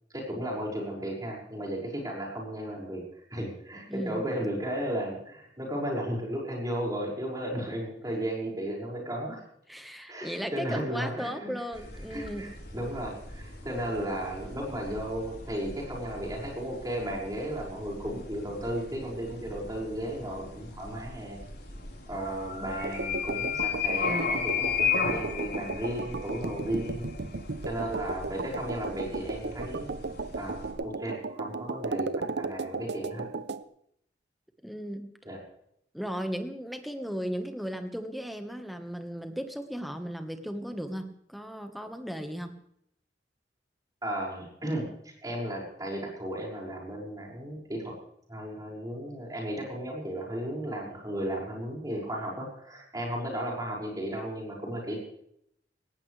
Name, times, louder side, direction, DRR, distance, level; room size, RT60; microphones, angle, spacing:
voice 1, 0.1-9.4 10.1-11.5 12.1-21.4 22.1-27.0 27.7-29.9 30.3-33.3 35.2-35.4 44.0-47.9 48.3-55.0, right 1 dB, 20° right, -2 dB, 5.9 m, -34 dB
voice 2, 3.9-4.2 9.7-12.4 34.6-35.1 35.9-42.5, equal, ahead, 6 dB, 1.4 m, -36 dB
sound 1, 11.7-30.7, left 5 dB, 65° left, 4.6 m, -36 dB
sound 2, 22.8-33.6, right 3 dB, 65° right, 0.8 m, -35 dB
19.0 x 18.0 x 3.4 m, 0.72 s
head